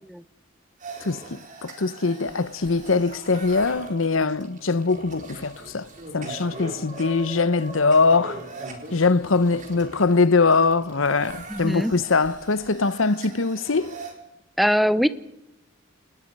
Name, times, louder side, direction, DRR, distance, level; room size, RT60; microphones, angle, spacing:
sound 1, 0.8-14.1, right 2 dB, 40° right, 4.4 m, -41 dB
voice 1, 1.0-8.4 8.9-13.9, left 4 dB, 75° left, 0.9 m, -22 dB
voice 2, 11.5-11.9 14.6-15.1, equal, ahead, 0.9 m, -21 dB
29.0 x 19.5 x 5.5 m
head